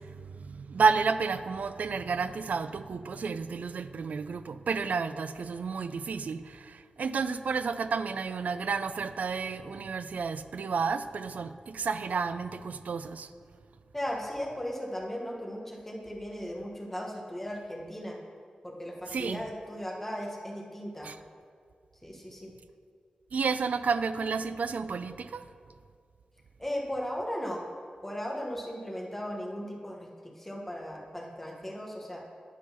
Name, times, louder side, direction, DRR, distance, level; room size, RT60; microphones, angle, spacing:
voice 1, 0.0-13.3 19.1-19.4 21.0-21.2 23.3-25.5, right 5 dB, 80° right, 12 dB, 0.3 m, -31 dB
voice 2, 13.9-18.2 18.6-21.1 22.0-22.5 26.6-27.6 28.0-32.2, equal, 10° left, -1 dB, 1.0 m, -37 dB
10.0 x 3.9 x 5.6 m, 2.1 s
wide cardioid pair, 125°, 3 cm